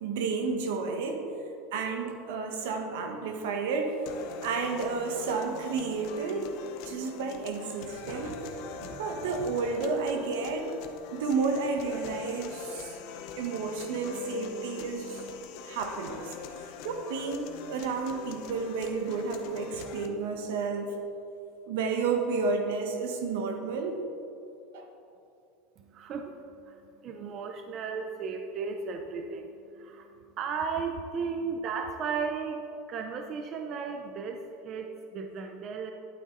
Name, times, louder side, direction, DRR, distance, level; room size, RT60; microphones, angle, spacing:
voice 1, 0.0-1.2 1.7-4.0 4.4-6.5 6.8-10.7 11.1-13.0 13.4-15.2 15.6-16.3 16.8-21.0 21.7-24.0 24.7-24.9, right 4 dB, 80° right, 4 dB, 1.3 m, -31 dB
sound 1, 4.1-20.1, left 6 dB, 60° left, 0.8 m, -43 dB
voice 2, 25.8-35.9, right 5 dB, 40° right, 5 dB, 0.6 m, -35 dB
11.5 x 8.8 x 3.9 m, 2.7 s
supercardioid pair, 145°, 0 cm